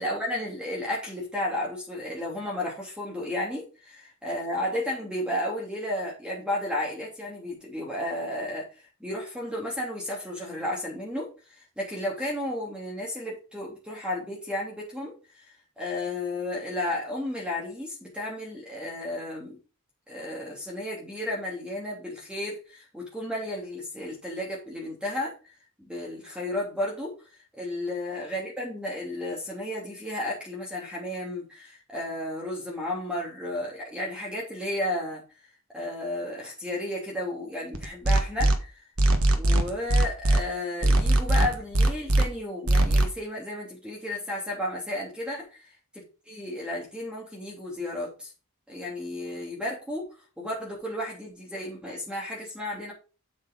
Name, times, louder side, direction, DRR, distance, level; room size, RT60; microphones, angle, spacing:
voice 1, 0.0-11.3 11.8-15.1 15.4-19.6 20.1-25.5 25.8-27.2 27.6-35.2 35.7-38.8 39.3-45.5 45.9-48.3 48.7-50.1 50.4-52.9, left 1 dB, 5° right, -3 dB, 2.9 m, -33 dB
sound 1, 37.7-38.6 39.0-40.4 40.8-42.2 42.7-43.1, right 1 dB, 75° right, 1.4 m, -20 dB
7.9 x 7.4 x 3.7 m, 0.33 s
head